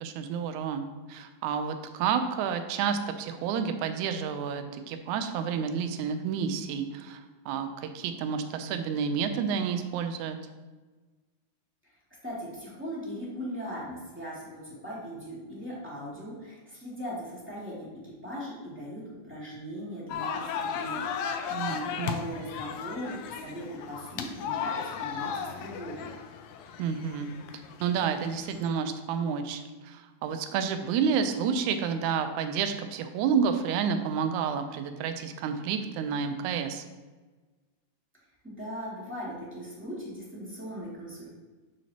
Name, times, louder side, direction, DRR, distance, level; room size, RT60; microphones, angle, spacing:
voice 1, 0.0-10.4 21.5-22.2 26.8-27.3 27.8-36.8, right 6 dB, 80° right, 8 dB, 1.8 m, -30 dB
voice 2, 12.2-26.1 38.4-41.3, equal, 5° right, -8 dB, 1.7 m, -39 dB
sound 1, 20.1-28.7, left 7 dB, 85° left, 1.7 m, -36 dB
11.0 x 6.1 x 2.9 m, 1.3 s
omnidirectional pair, 4.0 m